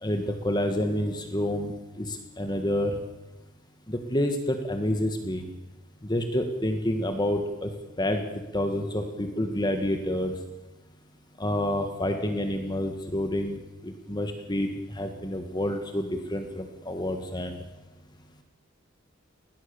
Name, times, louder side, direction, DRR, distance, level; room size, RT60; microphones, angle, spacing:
voice 1, 0.0-3.0 3.9-5.4 6.0-7.7 8.0-8.2 8.5-10.3 11.4-17.6, left 1 dB, 20° left, 6 dB, 1.7 m, -28 dB
21.0 x 18.5 x 7.1 m, 1.0 s
head